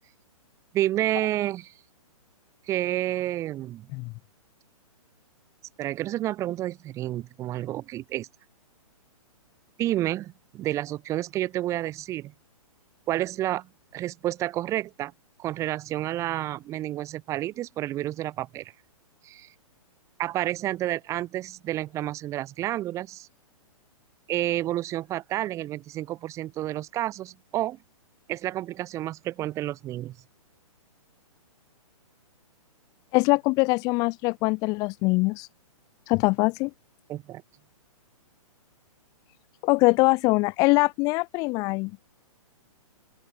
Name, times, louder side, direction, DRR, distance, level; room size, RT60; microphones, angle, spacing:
voice 1, 0.7-1.7 2.7-3.9 5.8-8.3 9.8-12.3 13.1-15.1 15.4-18.7 19.2-19.5 20.2-23.3 24.3-27.8 28.3-30.2 37.1-37.4, right 14 dB, 15° right, 3.0 m, -30 dB
voice 2, 33.1-35.5 36.1-36.7 39.6-41.9, left 26 dB, 20° left, 1.1 m, -23 dB
open air
hypercardioid pair, 170°, 19 cm